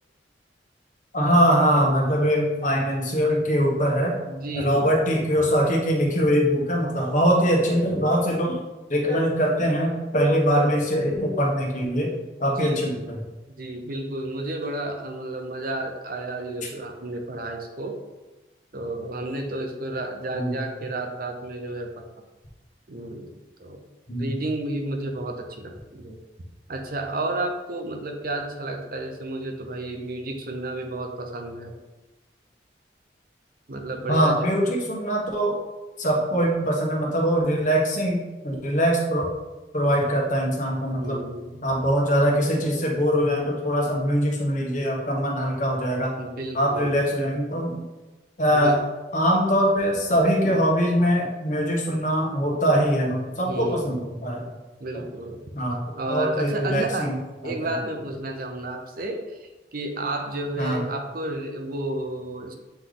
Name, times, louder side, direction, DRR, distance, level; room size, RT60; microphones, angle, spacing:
voice 1, 1.1-4.1 4.5-8.6 8.9-12.1 12.4-13.2 20.3-20.5 24.1-24.3 34.1-35.5 36.0-39.3 39.7-41.2 41.6-46.1 46.5-47.8 48.4-48.8 49.1-54.4 54.9-55.0 55.5-57.1 57.4-57.5 60.6-60.8, equal, 45° left, -1 dB, 1.3 m, -22 dB
voice 2, 4.3-4.9 12.1-12.2 12.6-13.1 13.5-18.0 18.7-22.0 22.9-23.3 23.6-23.8 24.2-26.2 26.7-31.8 33.7-34.5 41.0-41.8 46.2-46.9 48.5-48.8 53.5-54.1 54.8-55.4 55.9-57.1 57.4-62.5, right 2 dB, 50° right, 3 dB, 0.7 m, -32 dB
7.8 x 3.3 x 3.9 m, 1.2 s
head